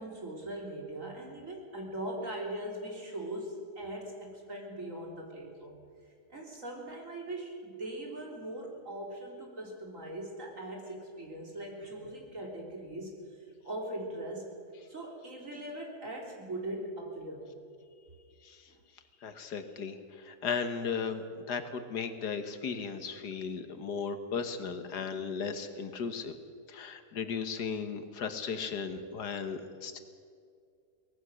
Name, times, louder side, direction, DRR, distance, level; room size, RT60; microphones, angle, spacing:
voice 1, 0.0-5.8 6.3-13.1 13.6-14.5 14.9-17.5 25.0-25.2, right 1 dB, 50° right, 0 dB, 4.0 m, -40 dB
voice 2, 19.2-26.4 26.7-30.0, left 6 dB, 80° left, 8 dB, 1.9 m, -36 dB
23.5 x 18.5 x 6.4 m, 2.3 s
omnidirectional pair, 1.7 m